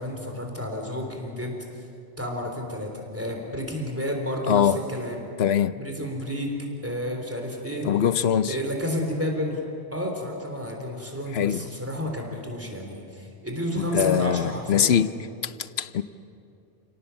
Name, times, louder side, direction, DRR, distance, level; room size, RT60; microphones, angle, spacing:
voice 1, 0.0-1.6 2.2-5.3 5.8-6.5 6.8-7.9 8.4-9.6 9.9-14.9, equal, 15° right, 2 dB, 3.5 m, -31 dB
voice 2, 4.5-4.8 5.4-5.8 7.8-8.6 11.3-11.6 13.8-15.1 15.4-16.0, left 9 dB, 80° left, 14 dB, 1.0 m, -22 dB
30.0 x 18.0 x 7.0 m, 2.6 s
omnidirectional pair, 1.0 m